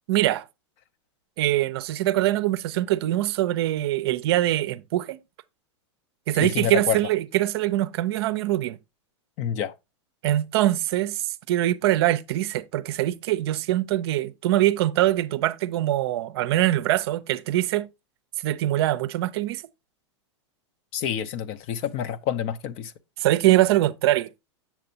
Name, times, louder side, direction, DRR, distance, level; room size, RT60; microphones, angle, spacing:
voice 1, 0.1-0.4 1.4-5.2 6.3-8.8 10.2-17.9 18.4-19.6 23.2-24.3, right 14 dB, 60° right, 0.5 m, -23 dB
voice 2, 6.4-7.0 9.4-9.7 20.9-22.9, left 9 dB, 40° left, 0.6 m, -28 dB
7.3 x 6.7 x 2.7 m
hypercardioid pair, 105°, 15 cm